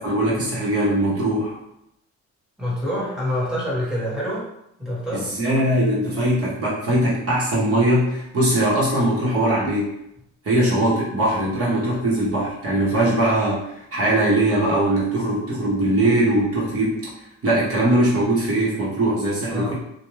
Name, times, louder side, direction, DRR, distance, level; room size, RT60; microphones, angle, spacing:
voice 1, 0.0-1.6 5.1-9.9 10.4-17.0 17.4-19.7, right 1 dB, 50° right, -6 dB, 1.0 m, -21 dB
voice 2, 2.6-4.5 4.8-5.3 19.5-19.7, left 1 dB, ahead, -7 dB, 1.1 m, -26 dB
2.4 x 2.3 x 3.1 m, 0.81 s
cardioid pair, 90°, 30 cm